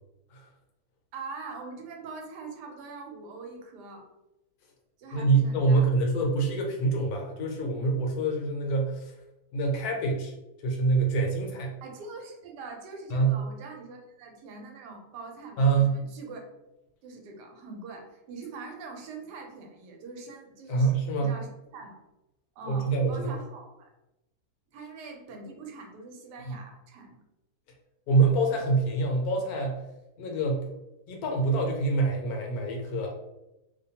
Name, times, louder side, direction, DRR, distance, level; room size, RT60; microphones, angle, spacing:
voice 1, 1.1-4.1 5.0-6.0 11.8-16.4 17.0-22.0 22.6-23.9 24.7-27.2, right 4 dB, 85° right, 2 dB, 1.2 m, -43 dB
voice 2, 5.1-9.2 9.5-10.3 10.6-11.7 13.1-13.4 15.6-16.0 20.7-21.4 22.7-23.4 26.5-26.6 28.1-29.8 30.2-30.7 31.1-33.1, right 3 dB, 70° left, 1 dB, 1.0 m, -25 dB
2.7 x 2.2 x 2.8 m, 0.93 s
omnidirectional pair, 1.7 m